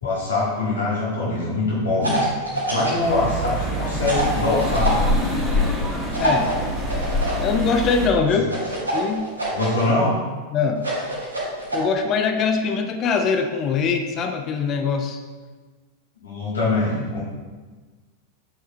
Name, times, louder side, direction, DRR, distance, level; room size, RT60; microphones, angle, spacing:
voice 1, 0.0-5.1 8.4-8.5 9.5-10.2 16.2-17.2, left 2 dB, 70° left, -8 dB, 1.9 m, -23 dB
sound 1, 2.0-3.0 4.0-5.0 6.1-7.4 8.5-9.8 10.8-11.8, right 2 dB, 80° right, 1.9 m, -25 dB
sound 2, 3.0-8.1, left 1 dB, 10° right, 1.9 m, -25 dB
voice 2, 6.2-6.5 7.4-8.5 8.9-9.3 10.5-10.9 11.7-15.2, left 5 dB, 30° left, 5 dB, 0.5 m, -22 dB
7.4 x 5.7 x 3.1 m, 1.4 s
figure-of-eight pair, 90°, 0 cm